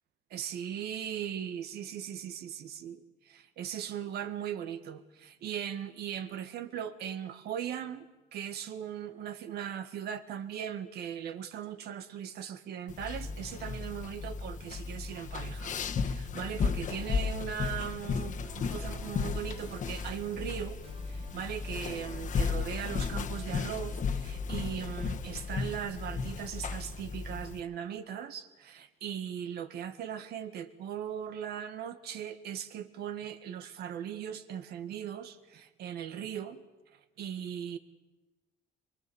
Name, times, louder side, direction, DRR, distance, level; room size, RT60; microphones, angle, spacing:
voice 1, 0.3-20.8 21.1-36.6 37.2-37.8, right 9 dB, 70° right, 10 dB, 1.8 m, -39 dB
sound 1, 12.9-27.6, left 5 dB, 50° left, 1.4 m, -35 dB
sound 2, 18.4-25.8, right 3 dB, 35° right, 3.7 m, -55 dB
24.0 x 23.0 x 7.2 m, 1.1 s
cardioid pair, 110°, 17 cm